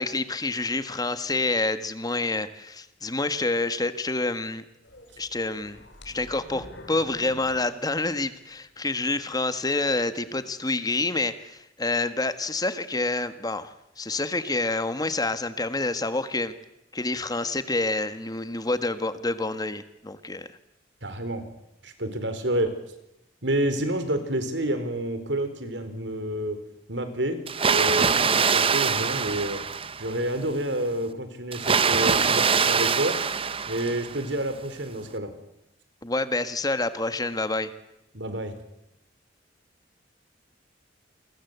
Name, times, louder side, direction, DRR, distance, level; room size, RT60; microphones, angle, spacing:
voice 1, 0.0-4.6 5.2-16.5 16.9-20.5 36.0-37.7, left 2 dB, 20° left, 11 dB, 1.6 m, -28 dB
sound 1, 4.8-8.6 9.0-9.1 9.8-9.9, left 1 dB, 70° left, 5.1 m, -47 dB
voice 2, 21.0-21.5 21.8-22.7 23.4-26.6 26.9-27.4 27.7-29.7 30.0-33.2 33.7-35.3 38.1-38.5, right 1 dB, 70° right, 10 dB, 4.5 m, -29 dB
Water, 27.5-30.3 31.5-34.3, right 5 dB, 30° right, 1.0 m, -23 dB
29.5 x 23.0 x 8.2 m, 0.86 s
head